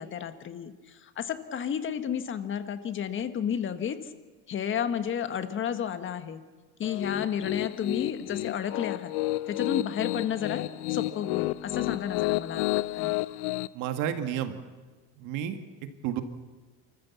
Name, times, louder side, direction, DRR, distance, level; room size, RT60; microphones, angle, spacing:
voice 1, 0.0-4.0 4.5-6.4 6.8-9.1 9.5-10.6 10.9-12.6 13.0-13.1, left 8 dB, 35° left, 9 dB, 1.5 m, -32 dB
Piano, 6.8-13.7, left 19 dB, 80° left, 0.7 m, -31 dB
voice 2, 13.7-14.6 15.2-15.6 16.0-16.2, right 10 dB, 65° right, 7 dB, 2.0 m, -30 dB
29.0 x 14.0 x 7.3 m, 1.3 s
supercardioid pair, 120°, 33 cm